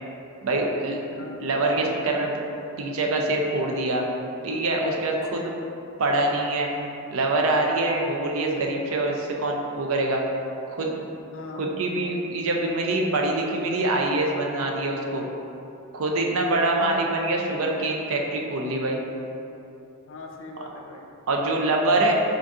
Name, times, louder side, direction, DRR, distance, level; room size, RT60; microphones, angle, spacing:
voice 1, 0.4-1.0 1.4-2.4 2.8-4.0 4.4-5.5 6.0-6.7 7.1-10.2 10.7-11.0 11.6-15.3 15.9-19.0 21.3-22.1, right 2 dB, 65° right, 0 dB, 0.5 m, -24 dB
voice 2, 1.1-1.6 5.3-5.5 11.3-11.8 16.7-17.1 20.1-21.1, left 3 dB, 60° left, 2 dB, 0.4 m, -38 dB
3.9 x 2.5 x 3.5 m, 2.8 s
head